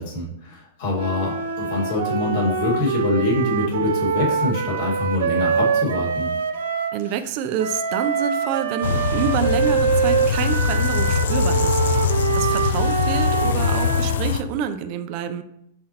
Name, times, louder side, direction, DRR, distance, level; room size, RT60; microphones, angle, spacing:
voice 1, 0.0-6.3, left 2 dB, 45° left, -3 dB, 1.8 m, -25 dB
sound 1, 0.9-7.0 7.6-14.2, right 6 dB, 80° right, 0.6 m, -24 dB
voice 2, 6.9-11.8 12.3-15.4, right 8 dB, 35° right, 8 dB, 0.4 m, -27 dB
sound 2, 8.8-14.4, left 6 dB, 80° left, 0.5 m, -22 dB
6.3 x 5.7 x 2.9 m, 0.77 s
supercardioid pair, 170°, 0 cm